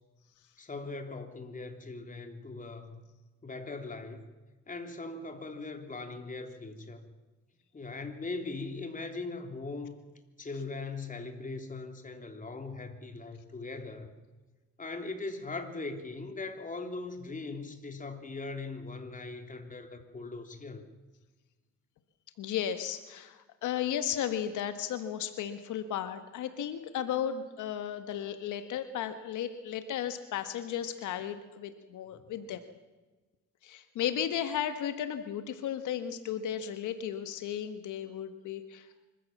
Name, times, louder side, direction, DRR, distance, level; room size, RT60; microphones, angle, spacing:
voice 1, 0.6-3.0 3.4-4.2 4.7-7.0 7.7-10.0 10.4-14.1 14.8-20.8 32.1-32.5, left 3 dB, 25° left, 6 dB, 3.5 m, -40 dB
voice 2, 22.4-32.6 33.6-38.9, left 9 dB, 85° left, 10 dB, 1.6 m, -34 dB
25.5 x 15.0 x 7.3 m, 1.2 s
cardioid pair, 90°, 30 cm